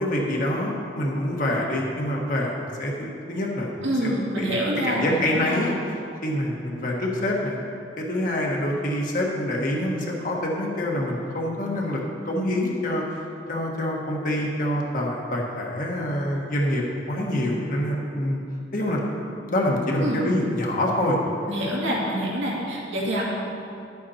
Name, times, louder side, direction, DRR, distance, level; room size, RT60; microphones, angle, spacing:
voice 1, 0.0-4.6 4.8-5.8 6.2-7.6 8.0-12.0 12.2-13.0 13.5-18.4 18.7-19.0 19.3-21.2, left 1 dB, 45° left, -2 dB, 1.5 m, -26 dB
voice 2, 3.8-5.7 20.0-20.2 21.5-23.2, right 1 dB, 75° right, -5 dB, 2.3 m, -26 dB
11.5 x 8.5 x 4.3 m, 2.6 s
head